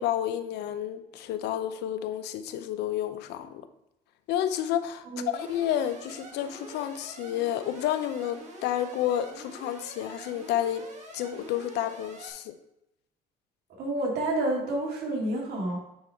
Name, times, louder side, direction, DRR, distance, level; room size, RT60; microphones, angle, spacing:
voice 1, 0.0-3.6 4.3-10.9 11.1-12.5, left 11 dB, 85° left, 11 dB, 0.6 m, -30 dB
Alarm, 5.3-12.3, right 2 dB, 45° right, 1.6 m, -46 dB
voice 2, 13.8-15.8, right 1 dB, 65° right, -2 dB, 2.6 m, -29 dB
9.5 x 4.6 x 3.5 m, 0.85 s
cardioid pair, 110°, 17 cm